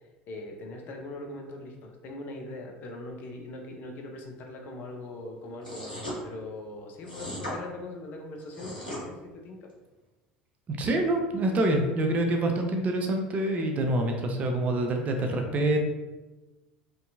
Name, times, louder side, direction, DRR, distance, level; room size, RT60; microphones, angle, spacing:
voice 1, 0.3-9.7 11.5-11.6, left 2 dB, 40° left, 2 dB, 0.5 m, -41 dB
sound 1, 5.6-6.2 7.0-7.6 8.4-9.0, left 1 dB, 85° left, 0.6 m, -37 dB
voice 2, 10.7-15.8, right 1 dB, 30° right, 4 dB, 0.4 m, -26 dB
2.6 x 2.2 x 2.6 m, 1.1 s
figure-of-eight pair, 70°, 5 cm